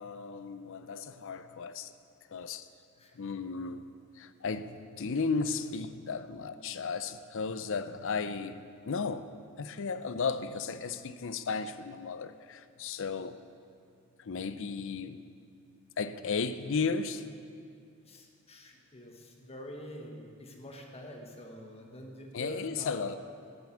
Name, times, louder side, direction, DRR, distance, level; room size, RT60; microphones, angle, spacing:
voice 1, 0.0-1.9 2.3-2.7 3.1-3.9 4.2-9.3 9.6-13.4 14.2-15.2 16.0-17.3 22.3-23.2, left 4 dB, 65° left, 0.5 m, -35 dB
voice 2, 18.1-23.1, equal, 30° left, 1.4 m, -46 dB
12.0 x 7.8 x 7.1 m
head